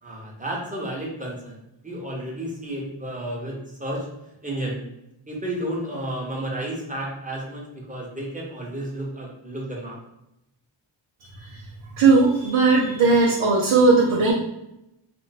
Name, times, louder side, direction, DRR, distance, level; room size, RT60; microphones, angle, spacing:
voice 1, 0.0-1.6 1.8-4.1 4.4-4.8 5.3-10.0, right 1 dB, 15° right, -3 dB, 1.0 m, -32 dB
voice 2, 12.0-14.3, right 3 dB, 80° right, -3 dB, 0.6 m, -17 dB
2.5 x 2.0 x 3.9 m, 0.86 s
cardioid pair, 65°, 48 cm